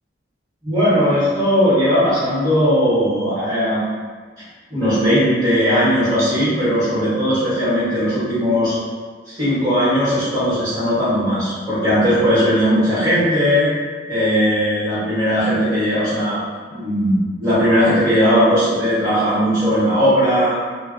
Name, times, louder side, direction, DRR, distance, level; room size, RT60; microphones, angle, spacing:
voice 1, 0.6-3.9 4.7-8.7 9.3-13.7 14.1-16.4 16.7-20.6, equal, 15° right, -15 dB, 1.0 m, -18 dB
2.1 x 2.1 x 3.6 m, 1.5 s
head